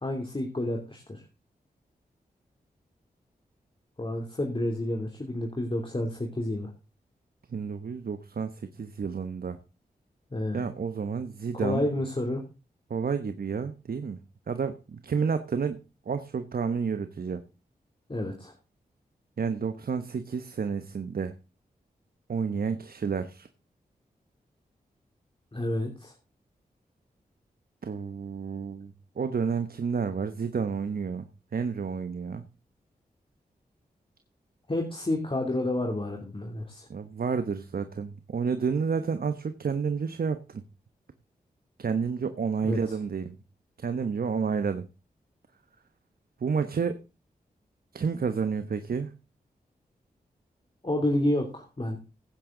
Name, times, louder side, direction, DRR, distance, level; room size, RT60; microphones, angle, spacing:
voice 1, 0.0-1.2 4.0-6.7 10.3-10.7 11.5-12.4 18.1-18.5 25.5-26.1 34.7-36.9 42.6-42.8 50.8-52.0, left 1 dB, 35° left, 1 dB, 2.9 m, -30 dB
voice 2, 7.5-9.6 10.5-11.9 12.9-14.2 14.5-15.8 16.1-17.4 19.4-21.3 22.3-23.5 27.8-32.4 36.9-40.6 41.8-43.4 43.8-44.9 46.4-47.0 47.9-49.1, right 6 dB, 65° right, 9 dB, 1.0 m, -30 dB
16.0 x 9.0 x 3.8 m, 0.30 s
cardioid pair, 40°, 16 cm